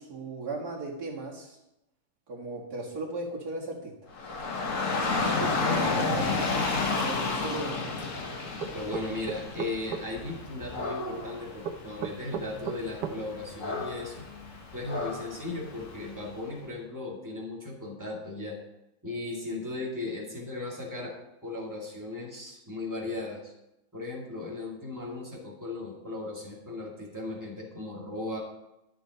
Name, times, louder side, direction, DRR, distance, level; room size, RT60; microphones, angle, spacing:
voice 1, 0.0-1.6 2.3-4.1 5.1-7.9, right 2 dB, 70° right, -2 dB, 2.3 m, -37 dB
Dog / Rain, 4.1-16.3, left 3 dB, 55° left, 1.6 m, -32 dB
sound 1, 8.6-10.0 11.6-13.2, right 7 dB, 90° right, 1.3 m, -34 dB
voice 2, 8.7-14.3 14.7-18.6 19.0-21.2 21.4-23.5 23.9-28.4, left 2 dB, 10° right, -3 dB, 2.0 m, -37 dB
12.5 x 6.7 x 4.1 m, 0.91 s
omnidirectional pair, 1.8 m